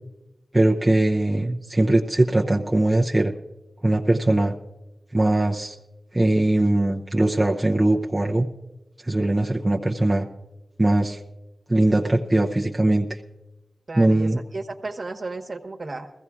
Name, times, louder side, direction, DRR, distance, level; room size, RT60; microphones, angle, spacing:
voice 1, 0.5-3.3 3.8-4.5 5.1-5.8 6.1-8.5 9.0-10.3 10.8-11.2 11.7-13.2 14.0-14.4, right 1 dB, 20° right, -1 dB, 0.6 m, -20 dB
voice 2, 13.9-16.1, right 3 dB, 50° right, 4 dB, 1.2 m, -34 dB
21.5 x 15.0 x 2.4 m, 1.0 s
wide cardioid pair, 80°, 0 cm